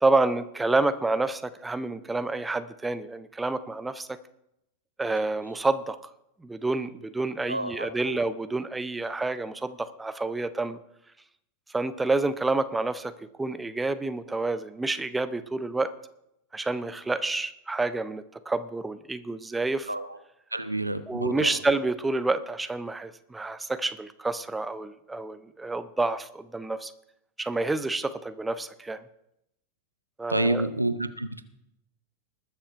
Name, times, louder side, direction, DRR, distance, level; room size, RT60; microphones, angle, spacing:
voice 1, 0.0-4.2 5.0-6.0 6.4-10.8 11.7-13.1 13.4-15.9 16.5-19.9 21.1-26.9 27.4-29.0 30.2-30.7, right 2 dB, 10° right, 12 dB, 0.6 m, -28 dB
voice 2, 7.5-8.2 19.9-20.2 20.5-21.6 30.3-31.4, right 1 dB, 85° right, 12 dB, 0.7 m, -29 dB
20.0 x 6.8 x 4.5 m, 0.81 s
figure-of-eight pair, 90°, 0 cm